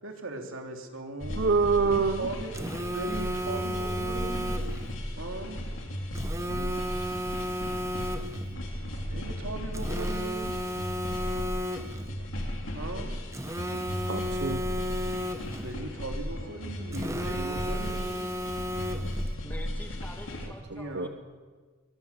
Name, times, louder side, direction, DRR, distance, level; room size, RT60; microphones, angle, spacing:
voice 1, 0.0-1.6 1.8-2.5 2.9-4.6 5.2-5.6 9.1-10.9 11.8-12.3 12.7-13.2 15.6-18.2 20.7-21.1, right 2 dB, 70° right, 3 dB, 2.9 m, -39 dB
sound 1, 1.2-20.5, equal, 65° left, 3.2 m, -35 dB
voice 2, 1.4-2.3 6.5-6.7 8.4-9.0 11.4-11.5 14.0-14.6 20.9-21.1, right 4 dB, 55° right, 8 dB, 0.8 m, -27 dB
Telephone, 2.5-4.9 6.2-8.5 9.7-12.1 13.3-15.7 16.9-19.3, equal, 15° right, 1.0 m, -34 dB
voice 3, 19.4-21.1, left 1 dB, 10° left, 3 dB, 2.5 m, -45 dB
22.5 x 20.0 x 7.0 m, 1.5 s
head